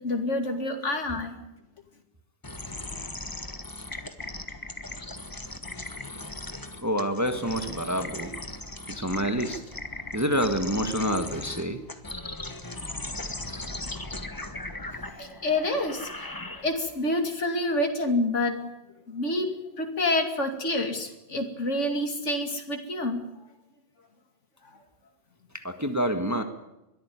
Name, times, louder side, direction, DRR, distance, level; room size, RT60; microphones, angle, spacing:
voice 1, 0.0-1.3 15.2-18.6 19.1-19.5 19.8-23.2, left 1 dB, 80° left, 4 dB, 2.8 m, -28 dB
sound 1, 2.4-17.0, left 2 dB, 15° left, 1.4 m, -38 dB
voice 2, 6.8-8.3 8.9-9.6 10.1-11.8 25.5-26.4, equal, 15° right, 6 dB, 1.6 m, -27 dB
22.0 x 13.5 x 9.5 m, 0.92 s
omnidirectional pair, 1.2 m